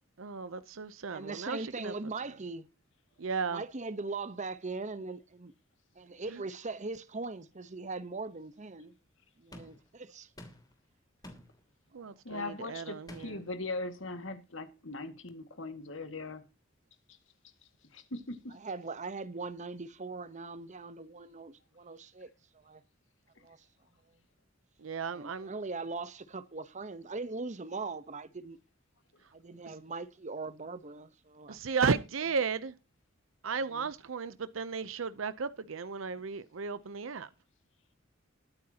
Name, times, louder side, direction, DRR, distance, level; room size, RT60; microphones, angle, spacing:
voice 1, 0.2-1.9 3.2-3.6 6.3-6.4 11.9-13.3 24.8-25.5 31.5-32.7 33.4-37.3, right 5 dB, 80° right, 0.7 m, -34 dB
voice 2, 1.1-2.7 3.5-5.5 6.0-8.9 9.4-10.3 18.6-22.8 23.4-23.6 25.1-28.6 29.3-31.6 33.7-33.9, right 3 dB, 40° right, 1.0 m, -40 dB
sound 1, 9.5-9.9 10.4-10.8 11.2-11.6 13.1-13.5, left 1 dB, 20° left, 2.8 m, -49 dB
voice 3, 12.2-16.4 17.1-17.2 17.9-18.6 29.1-29.2, left 2 dB, 70° left, 2.0 m, -40 dB
20.5 x 9.4 x 2.9 m
head